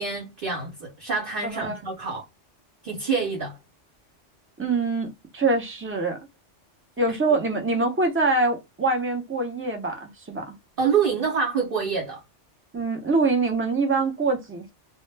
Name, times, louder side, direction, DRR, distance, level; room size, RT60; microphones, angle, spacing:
voice 1, 0.0-2.2 2.8-3.6 10.8-12.2, right 5 dB, 55° right, 0.7 m, -26 dB
voice 2, 1.4-1.8 4.6-6.2 7.0-10.5 12.7-14.7, right 3 dB, 20° right, 0.3 m, -24 dB
2.1 x 2.0 x 3.1 m
omnidirectional pair, 1.2 m